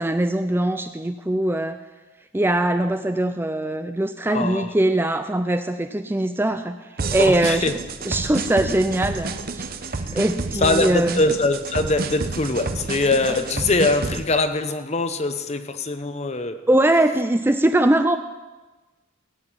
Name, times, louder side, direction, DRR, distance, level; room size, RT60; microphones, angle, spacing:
voice 1, 0.0-1.8 2.3-6.8 7.1-7.7 8.0-9.7 10.1-11.2 16.7-18.2, right 1 dB, 10° right, 9 dB, 0.4 m, -21 dB
voice 2, 4.3-4.7 7.2-7.7 9.9-10.1 10.6-16.7, left 2 dB, 35° left, 10 dB, 0.8 m, -23 dB
sound 1, 7.0-14.2, right 3 dB, 45° right, 0.8 m, -29 dB
17.0 x 5.9 x 8.9 m, 1.2 s
head